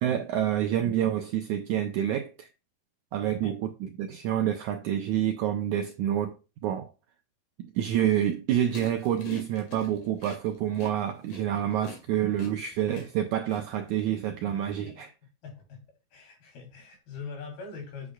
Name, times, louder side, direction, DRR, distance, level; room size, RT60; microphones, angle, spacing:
voice 1, 0.0-2.5 3.1-6.9 7.6-15.1, right 11 dB, 85° right, 1.7 m, -28 dB
sound 1, 8.7-14.1, left 2 dB, 60° left, 3.4 m, -44 dB
voice 2, 15.4-15.8 16.1-18.1, left 5 dB, 85° left, 5.1 m, -42 dB
8.2 x 8.1 x 2.3 m
omnidirectional pair, 4.3 m